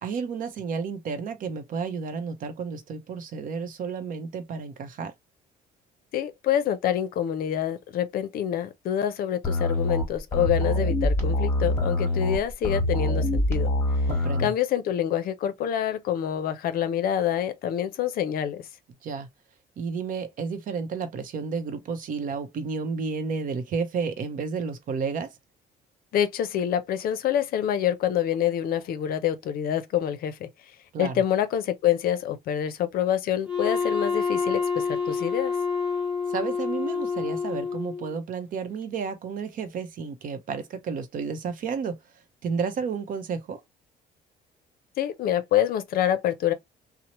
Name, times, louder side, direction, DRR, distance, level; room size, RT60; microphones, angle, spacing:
voice 1, 0.0-5.1 14.1-14.5 19.0-19.3 19.8-25.3 30.9-31.2 36.3-42.0 42.4-43.6, right 5 dB, 55° right, 0.7 m, -31 dB
voice 2, 6.1-13.7 14.4-18.6 26.1-30.5 31.0-35.5 45.0-46.5, left 10 dB, 60° left, 0.5 m, -26 dB
sound 1, 9.4-14.5, left 1 dB, 15° left, 1.1 m, -25 dB
Wind instrument woodwind instrument, 33.5-38.2, left 5 dB, 5° right, 0.8 m, -28 dB
2.9 x 2.0 x 2.9 m
cardioid pair, 110°, 17 cm